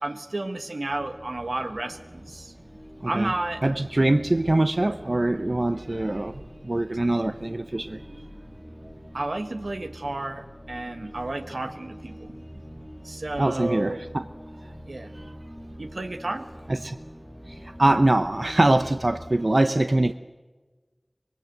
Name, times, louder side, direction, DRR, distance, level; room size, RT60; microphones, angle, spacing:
voice 1, 0.0-2.5 3.0-3.6 9.1-12.4 13.0-14.0 14.9-15.1 15.8-16.4, right 2 dB, 85° right, 1.4 m, -32 dB
sound 1, 0.9-19.5, equal, 10° left, 1.7 m, -45 dB
voice 2, 3.6-8.2 13.4-14.3 16.7-17.0 17.5-20.1, right 2 dB, 55° right, 0.7 m, -23 dB
24.5 x 21.5 x 8.0 m
wide cardioid pair, 40°, 0 cm